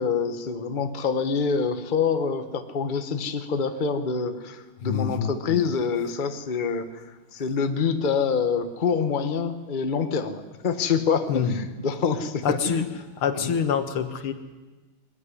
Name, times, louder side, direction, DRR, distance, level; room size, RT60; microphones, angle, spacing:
voice 1, 0.0-6.9 7.3-12.9 13.3-13.5, left 5 dB, 30° left, 8 dB, 1.1 m, -26 dB
voice 2, 4.8-5.7 11.3-11.6 12.4-12.9 13.2-14.3, left 7 dB, 90° left, 9 dB, 2.2 m, -26 dB
21.5 x 14.5 x 10.0 m, 1.2 s
omnidirectional pair, 2.3 m